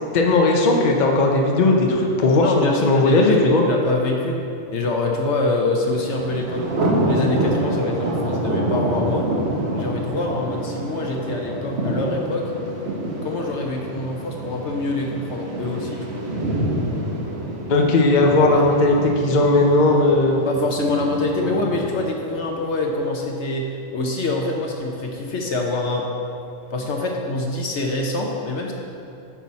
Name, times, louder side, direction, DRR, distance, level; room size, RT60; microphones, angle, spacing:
voice 1, 0.1-3.6 17.7-20.4, left 2 dB, 40° left, 0 dB, 0.8 m, -17 dB
voice 2, 2.3-4.4 4.7-6.7 7.0-9.3 9.7-12.5 13.2-16.3 18.5-18.6 20.5-26.1 26.7-28.7, left 2 dB, 60° left, 1 dB, 1.0 m, -25 dB
Thunder, 5.9-22.9, right 1 dB, 55° right, 1.3 m, -27 dB
9.9 x 6.0 x 4.1 m, 2.8 s
omnidirectional pair, 1.4 m